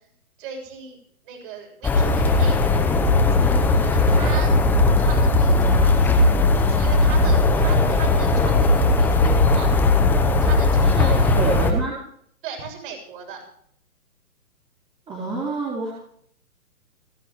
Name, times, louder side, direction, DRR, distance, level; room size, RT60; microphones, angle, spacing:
voice 1, 0.4-1.0 1.2-4.5 5.0-6.3 6.6-9.7 10.3-11.6 12.4-13.4, right 5 dB, 35° right, 1 dB, 7.1 m, -38 dB
sound 1, 1.8-11.7, left 2 dB, 5° left, 0.8 m, -18 dB
voice 2, 10.8-12.0 15.1-15.9, right 3 dB, 10° right, -6 dB, 3.8 m, -27 dB
30.0 x 10.5 x 3.1 m, 0.64 s
figure-of-eight pair, 135°, 44 cm